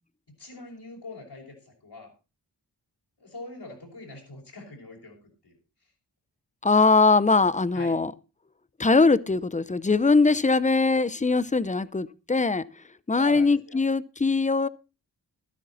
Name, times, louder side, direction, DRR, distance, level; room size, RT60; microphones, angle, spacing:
voice 1, 0.4-2.1 3.2-5.2 5.4-5.5 7.7-8.0 13.1-13.8, left 2 dB, 70° left, 5.4 m, -43 dB
voice 2, 6.6-8.1 8.8-12.6 13.1-14.7, left 3 dB, 20° left, 0.6 m, -21 dB
13.0 x 12.0 x 4.1 m
wide cardioid pair, 95°, 42 cm